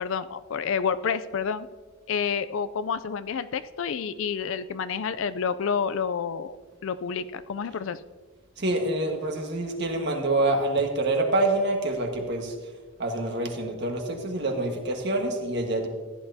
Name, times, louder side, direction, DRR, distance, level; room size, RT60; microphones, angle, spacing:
voice 1, 0.0-1.7 2.1-6.6 6.8-8.0, left 6 dB, 60° left, 13 dB, 0.4 m, -29 dB
voice 2, 8.6-12.5 13.0-15.9, right 2 dB, 50° right, 3 dB, 1.5 m, -26 dB
15.0 x 11.0 x 2.7 m, 1.4 s
head